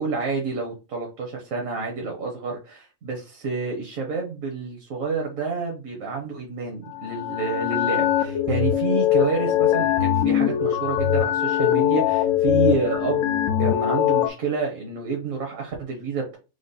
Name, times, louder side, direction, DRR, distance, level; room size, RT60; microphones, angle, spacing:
voice 1, 0.0-13.2 13.6-16.4, right 4 dB, 70° right, 1 dB, 1.4 m, -29 dB
sound 1, 6.9-14.3, left 10 dB, 65° left, 1.0 m, -22 dB
5.1 x 2.1 x 3.9 m, 0.30 s
omnidirectional pair, 1.5 m